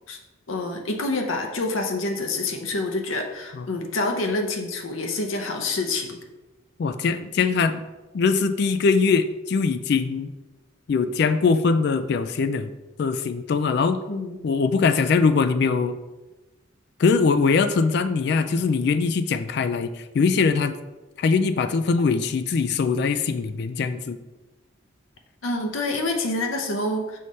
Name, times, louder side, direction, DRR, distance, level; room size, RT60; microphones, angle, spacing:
voice 1, 0.5-6.2 14.1-14.4 25.4-27.2, left 2 dB, 85° left, 3 dB, 0.8 m, -27 dB
voice 2, 6.8-7.8 8.1-10.3 10.9-12.7 13.0-14.0 14.4-16.0 17.0-20.8 21.2-24.2, left 4 dB, 55° left, 10 dB, 0.3 m, -22 dB
5.6 x 3.2 x 5.3 m, 1.1 s
head